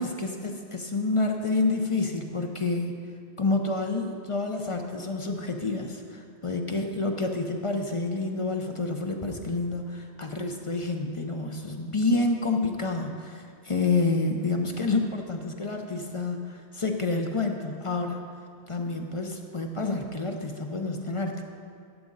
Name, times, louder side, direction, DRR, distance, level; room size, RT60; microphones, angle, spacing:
voice 1, 0.0-2.9 3.4-18.2 18.7-21.4, left 3 dB, 35° left, 3 dB, 0.7 m, -28 dB
12.5 x 8.5 x 3.9 m, 2.3 s
omnidirectional pair, 1.2 m